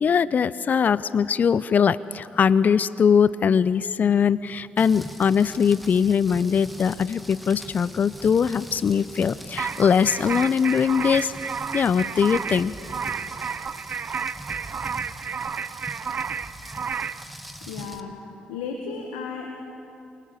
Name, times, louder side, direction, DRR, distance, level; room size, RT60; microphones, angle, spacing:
voice 1, 0.0-11.3 11.7-12.7, left 7 dB, 50° left, 18 dB, 0.5 m, -21 dB
Rain, 4.8-18.0, equal, ahead, 1.9 m, -42 dB
sound 1, 9.6-17.2, right 6 dB, 50° right, 0.7 m, -31 dB
voice 2, 17.7-18.2 18.5-19.5, left 5 dB, 90° left, 3 dB, 1.6 m, -34 dB
28.0 x 21.5 x 6.8 m, 2.7 s
hypercardioid pair, 50°, 4 cm